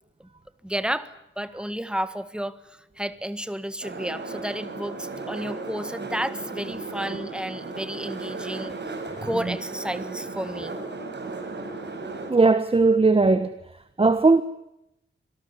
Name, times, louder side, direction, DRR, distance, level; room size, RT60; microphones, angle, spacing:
voice 1, 0.6-10.8, equal, 5° right, 1.6 m, -32 dB
sound 1, 3.8-12.3, right 3 dB, 55° right, 6.0 m, -35 dB
voice 2, 12.3-13.5 14.0-14.4, right 3 dB, 25° right, 1.3 m, -18 dB
26.5 x 18.5 x 9.8 m
wide cardioid pair, 120°, 21 cm